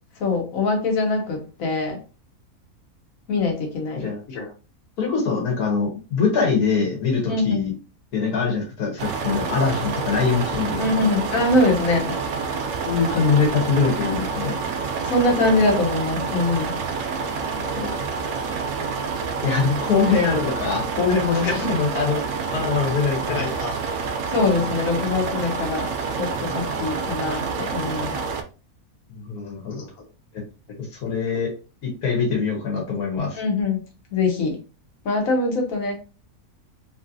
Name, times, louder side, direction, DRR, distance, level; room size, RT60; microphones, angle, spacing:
voice 1, 0.2-2.0 3.3-4.5 7.3-7.7 10.8-12.0 15.0-16.7 21.3-21.7 23.3-23.8 24.3-25.9 26.2-28.2 29.7-29.9 33.4-33.8 34.1-34.6 35.0-35.9, left 2 dB, 65° left, 1 dB, 1.2 m, -23 dB
voice 2, 5.0-7.7 8.1-11.1 12.8-14.6 17.6-18.0 19.4-22.2 22.5-23.5 29.1-29.8 31.0-31.5 31.8-33.4, left 5 dB, 85° left, -1 dB, 1.5 m, -23 dB
sound 1, 9.0-28.4, right 5 dB, 70° right, 0.8 m, -28 dB
3.0 x 2.7 x 2.5 m, 0.33 s
omnidirectional pair, 1.6 m